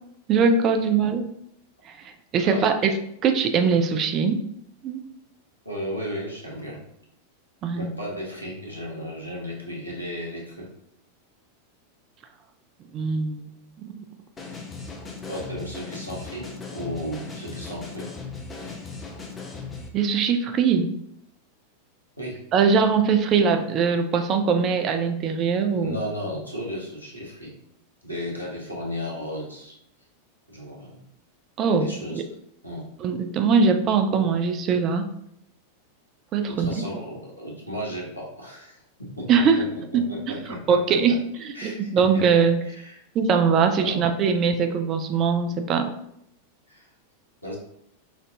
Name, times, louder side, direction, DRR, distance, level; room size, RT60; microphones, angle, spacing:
voice 1, 0.3-1.2 2.0-2.9 3.2-4.4 4.8-5.0 7.6-7.9 12.9-13.5 13.8-14.0 19.9-20.9 22.5-26.0 31.6-31.9 33.0-35.0 36.3-36.7 39.3-39.6 39.9-40.0 40.7-41.1 41.6-42.6 43.1-45.9, right 5 dB, 30° right, 7 dB, 0.5 m, -21 dB
voice 2, 5.6-6.8 7.7-10.7 15.3-18.1 22.2-22.4 25.7-27.6 28.0-29.8 30.5-31.0 31.8-32.2 32.6-32.9 36.4-39.3 39.6-41.2 41.5-43.0 43.8-44.0 46.7-46.9 47.4-47.6, equal, 90° left, -4 dB, 1.1 m, -35 dB
sound 1, 14.4-19.9, left 4 dB, 20° left, 0.7 m, -37 dB
5.1 x 2.6 x 2.7 m, 0.73 s
figure-of-eight pair, 90°, 0 cm